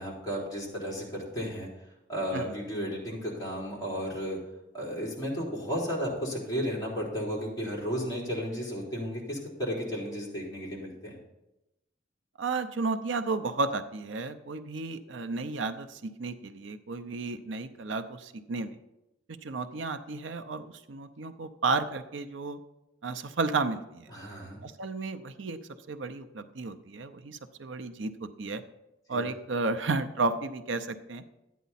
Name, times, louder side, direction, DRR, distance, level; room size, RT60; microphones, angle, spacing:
voice 1, 0.0-1.7 2.1-4.4 4.7-11.2 24.1-24.6 29.1-29.3, equal, 20° left, -6 dB, 4.0 m, -33 dB
voice 2, 12.4-18.8 19.4-22.6 23.0-24.1 24.6-25.6 25.9-28.6 29.1-31.2, right 3 dB, 80° right, 10 dB, 0.6 m, -33 dB
12.5 x 9.2 x 4.2 m, 0.92 s
head